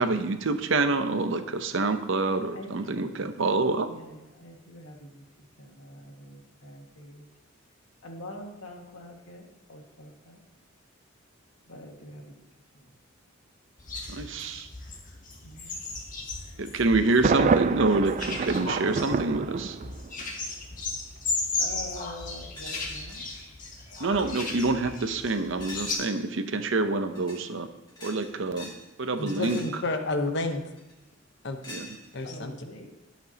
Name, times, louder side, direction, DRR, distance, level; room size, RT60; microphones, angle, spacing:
voice 1, 0.0-3.9 14.1-14.7 16.6-19.8 24.0-27.7 28.0-28.7 29.0-29.6 31.7-31.9, right 3 dB, 65° right, 8 dB, 0.7 m, -27 dB
voice 2, 2.1-3.4 3.8-5.2 5.6-7.3 8.0-10.4 11.7-12.4 12.7-12.9 15.4-15.8 21.6-23.3 32.2-32.9, left 1 dB, 85° left, 1 dB, 1.9 m, -45 dB
sound 1, 13.8-25.9, left 3 dB, 40° left, 1.6 m, -35 dB
Thunder, 17.2-20.2, right 5 dB, 35° right, 0.3 m, -27 dB
sound 2, 22.5-23.4 23.9-24.3 25.6-26.2 27.1-27.5 27.9-28.9 29.1-29.8 30.8-31.1 31.6-32.3, left 1 dB, 20° left, 2.1 m, -44 dB
voice 3, 29.2-30.7 31.4-31.6 32.1-32.5, left 2 dB, 55° left, 6 dB, 1.0 m, -30 dB
17.5 x 6.0 x 2.9 m, 0.98 s
head